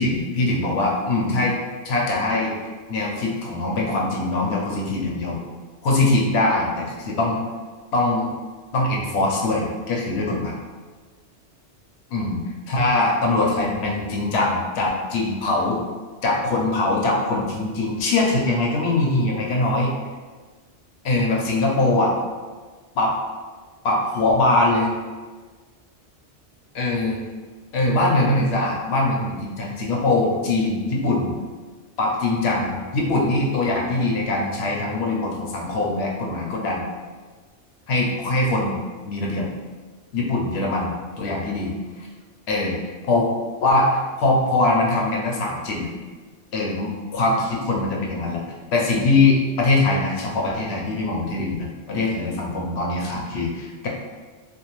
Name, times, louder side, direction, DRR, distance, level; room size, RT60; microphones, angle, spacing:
voice 1, 0.0-1.5 1.8-2.6 2.9-5.4 5.8-7.4 7.9-8.3 8.7-10.6 12.1-12.4 12.7-15.8 16.2-19.9 21.0-22.1 23.0-23.2 23.8-24.9 26.7-27.2 27.7-31.3 32.0-36.8 37.9-38.8 39.0-39.5 40.1-41.7 42.0-42.1 42.5-42.8 43.1-43.3 43.6-45.9 46.5-48.4 48.7-53.9, left 2 dB, 70° left, -2 dB, 0.8 m, -22 dB
2.6 x 2.2 x 3.0 m, 1.4 s
omnidirectional pair, 1.2 m